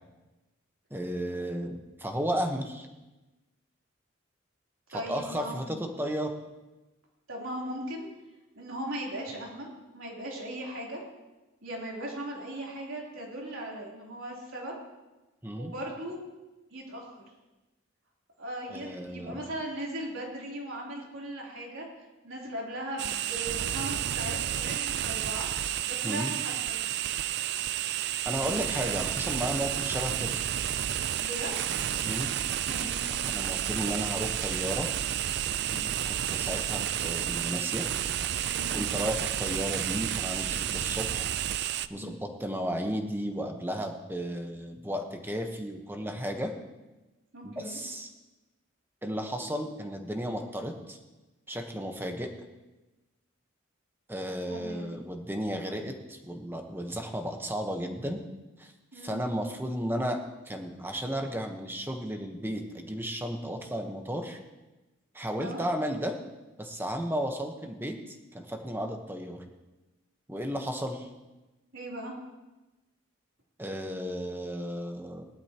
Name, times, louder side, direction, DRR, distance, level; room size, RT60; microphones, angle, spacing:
voice 1, 0.9-2.9 4.9-6.3 15.4-15.7 18.7-19.4 26.0-26.3 27.8-30.3 32.0-32.3 33.2-34.9 36.1-37.9 38.7-41.3 41.9-46.5 47.4-48.1 49.0-51.0 51.5-52.3 54.1-58.2 58.6-60.2 60.5-64.4 65.1-66.2 66.6-69.4 70.3-71.1 73.6-75.3, equal, 10° right, 4 dB, 1.1 m, -34 dB
voice 2, 4.9-5.8 7.3-8.1 8.5-11.0 11.6-14.8 15.6-16.2 16.7-17.2 18.4-21.9 22.2-25.5 25.8-26.5 31.2-31.6 32.7-33.0 35.6-35.9 38.5-38.8 41.9-42.2 47.3-47.8 54.5-55.0 58.9-59.2 65.4-65.6 71.7-72.1, right 1 dB, 80° right, -3 dB, 3.5 m, -38 dB
sound 1, 23.0-41.9, right 10 dB, 55° right, 0.4 m, -31 dB
19.0 x 12.0 x 3.0 m, 1.1 s
head